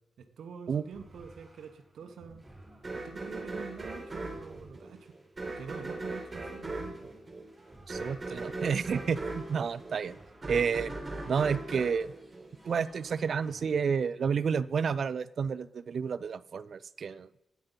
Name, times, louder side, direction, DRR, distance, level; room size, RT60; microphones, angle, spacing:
voice 1, 0.2-2.4 3.0-5.1 5.6-7.1, right 6 dB, 85° right, 6 dB, 1.0 m, -46 dB
sound 1, 0.8-13.6, right 1 dB, 5° right, 3.6 m, -57 dB
sound 2, 2.8-13.1, right 2 dB, 25° right, 2.5 m, -39 dB
voice 2, 7.9-10.2 10.5-10.9 11.3-12.1 12.7-17.3, right 6 dB, 55° right, 16 dB, 0.4 m, -30 dB
13.0 x 9.5 x 3.9 m, 0.91 s
wide cardioid pair, 130°, 0 cm